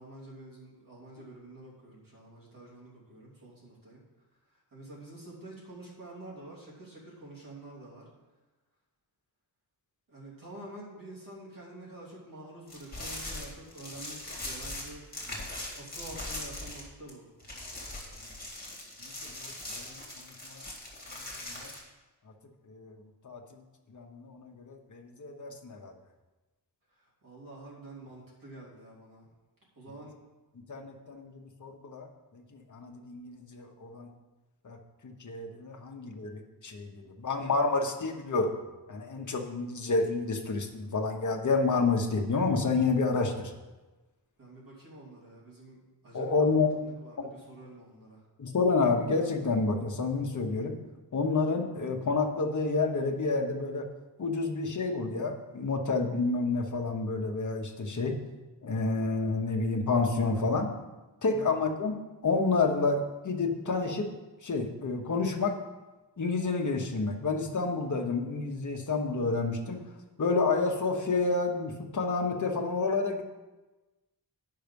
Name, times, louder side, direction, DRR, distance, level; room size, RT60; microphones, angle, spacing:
voice 1, 0.0-4.0 4.7-8.0 10.1-15.0 15.8-17.3 27.0-29.3 29.8-30.2 44.4-48.2 61.3-61.6, right 1 dB, 50° right, -5 dB, 3.0 m, -48 dB
sound 1, 12.7-17.1 17.4-21.8, left 1 dB, 20° left, 2.3 m, -40 dB
voice 2, 19.0-20.6 21.1-21.7 22.7-23.0 23.2-23.6 23.9-25.9 30.7-34.1 34.6-34.8 35.0-38.5 38.9-43.5 46.1-46.7 47.2-47.3 48.4-50.8 51.1-53.9 54.2-58.2 58.6-60.7 61.2-61.9 62.2-64.1 64.4-65.6 66.2-69.8 70.2-73.2, left 3 dB, 45° left, 3 dB, 1.1 m, -29 dB
9.3 x 5.7 x 5.3 m, 1.2 s
wide cardioid pair, 150°, 42 cm